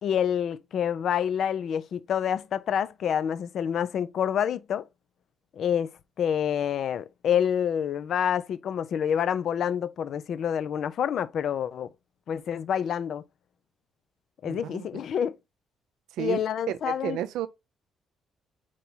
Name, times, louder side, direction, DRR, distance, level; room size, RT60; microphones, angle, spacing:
voice 1, 0.0-4.9 5.6-5.9 6.2-11.9 12.3-13.2 14.4-15.4 16.2-17.2, left 8 dB, 65° left, 0.6 m, -27 dB
voice 2, 14.4-14.9 16.1-16.4 16.7-17.5, right 12 dB, 90° right, 0.6 m, -32 dB
4.6 x 4.5 x 5.5 m
cardioid pair, 80°, 0 cm